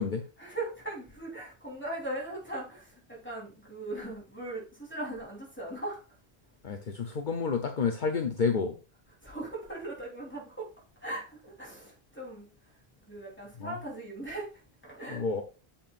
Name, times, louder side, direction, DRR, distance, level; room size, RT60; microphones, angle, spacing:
voice 1, 0.4-6.0 9.2-10.7 11.0-12.5 13.1-15.2, right 2 dB, 10° left, 3.7 m, -39 dB
voice 2, 6.6-8.8 13.6-13.7 15.1-15.4, left 5 dB, 50° left, 0.9 m, -29 dB
8.6 x 7.6 x 2.5 m
omnidirectional pair, 1.1 m